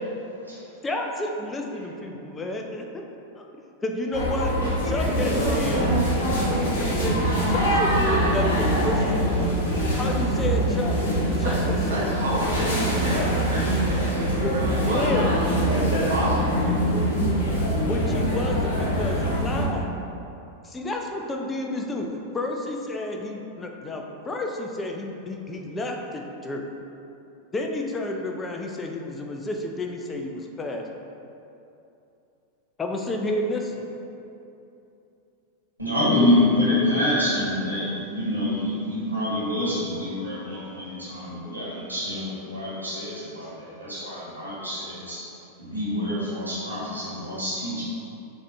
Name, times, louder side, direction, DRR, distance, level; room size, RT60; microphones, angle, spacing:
voice 1, 0.8-3.0 3.4-4.5 4.8-6.0 6.5-7.2 7.5-9.6 10.0-10.9 11.4-12.2 14.4-14.5 14.8-15.3 17.9-19.9 20.6-26.7 27.5-30.8 32.8-33.9, left 2 dB, 15° left, 2 dB, 0.4 m, -31 dB
sound 1, 4.1-19.6, right 1 dB, 60° left, 1.1 m, -23 dB
voice 2, 11.4-16.8, right 1 dB, 70° right, -6 dB, 0.9 m, -31 dB
voice 3, 35.8-45.2 45.6-47.8, left 1 dB, 85° right, -9 dB, 1.4 m, -26 dB
5.1 x 2.6 x 3.2 m, 2.8 s
figure-of-eight pair, 90°, 0 cm